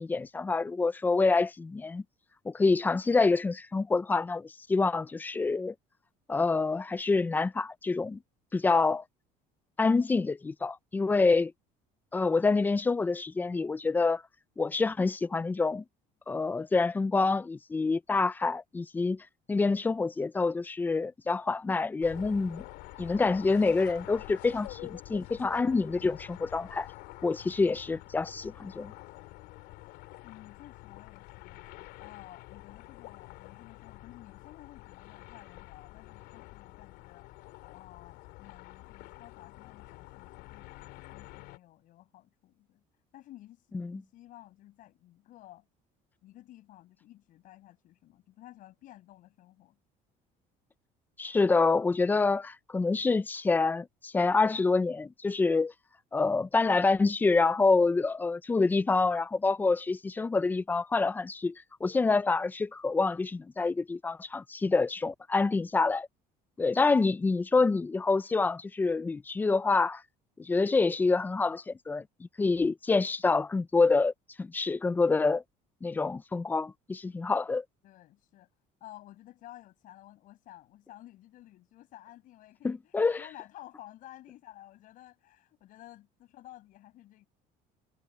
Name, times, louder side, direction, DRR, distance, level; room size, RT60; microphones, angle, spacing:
voice 1, 0.0-2.0 2.5-5.7 6.3-8.2 8.5-9.0 9.8-11.5 12.1-14.2 14.6-15.8 16.3-22.6 23.0-26.9 27.2-28.9 43.8-44.0 51.2-55.7 56.1-61.5 61.8-66.1 66.6-70.0 70.4-72.0 72.4-74.1 74.4-75.4 75.8-77.6 82.6-83.2, left 3 dB, 10° left, 0.4 m, -27 dB
sound 1, 22.0-41.6, left 20 dB, 80° left, 2.8 m, -48 dB
voice 2, 30.2-31.6 32.0-42.8 43.1-45.7 46.2-49.8 77.8-78.5 78.8-87.3, left 15 dB, 50° left, 7.5 m, -53 dB
cardioid pair, 170°, 17 cm